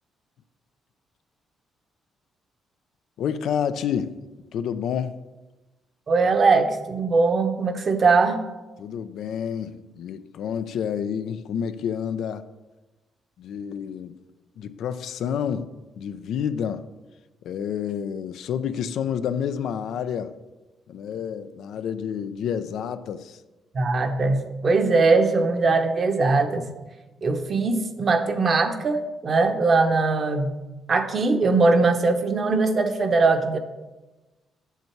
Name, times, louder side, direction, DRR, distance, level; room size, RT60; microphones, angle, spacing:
voice 1, 3.2-4.2 4.5-5.2 8.8-12.5 13.4-14.2 14.6-15.7 16.0-16.8 17.4-20.3 20.9-23.4, left 8 dB, 75° left, 0.5 m, -29 dB
voice 2, 6.1-8.4 23.7-26.6 27.2-30.5 30.9-33.6, right 3 dB, 45° right, 0.9 m, -21 dB
8.1 x 7.0 x 4.6 m
cardioid pair, 90°, 0 cm